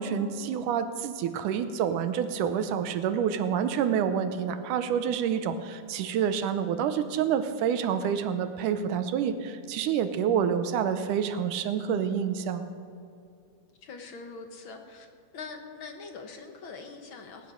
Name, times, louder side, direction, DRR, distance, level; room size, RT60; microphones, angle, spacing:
voice 1, 0.0-12.7, right 8 dB, 75° right, 10 dB, 2.3 m, -28 dB
voice 2, 13.8-15.1 15.3-17.5, left 4 dB, 50° left, 5 dB, 1.6 m, -43 dB
20.0 x 10.5 x 6.4 m, 2.6 s
omnidirectional pair, 3.8 m